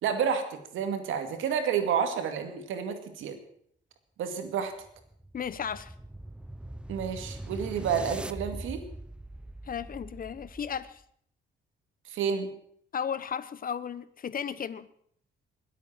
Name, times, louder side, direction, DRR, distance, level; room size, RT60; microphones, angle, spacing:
voice 1, 0.0-3.4 4.2-4.7 6.9-8.9 12.1-12.5, right 7 dB, 85° right, 7 dB, 2.3 m, -30 dB
sound 1, 4.6-11.0, right 1 dB, 5° right, 0.8 m, -42 dB
voice 2, 5.3-5.9 9.7-11.0 12.9-14.9, left 7 dB, 45° left, 16 dB, 1.0 m, -34 dB
21.5 x 8.4 x 7.4 m, 0.66 s
cardioid pair, 90°, 20 cm